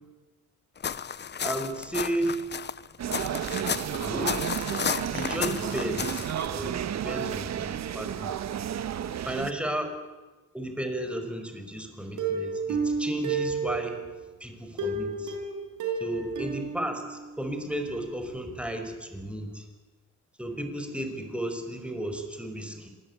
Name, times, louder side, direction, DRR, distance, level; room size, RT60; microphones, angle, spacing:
sound 1, 0.8-6.5, left 7 dB, 35° left, 0.9 m, -33 dB
voice 1, 1.4-2.4 3.5-4.4 5.1-8.4 9.3-9.9 10.5-14.0 14.4-15.4 16.0-19.7 20.4-22.9, right 1 dB, 5° right, 6 dB, 5.4 m, -34 dB
sound 2, 3.0-9.5, right 9 dB, 60° right, 1.4 m, -32 dB
Plucked string instrument, 12.2-14.2 14.8-17.6 17.9-18.0 18.3-18.4, right 4 dB, 85° right, 6.4 m, -31 dB
26.0 x 20.0 x 8.8 m, 1.2 s
cardioid pair, 90°, 30 cm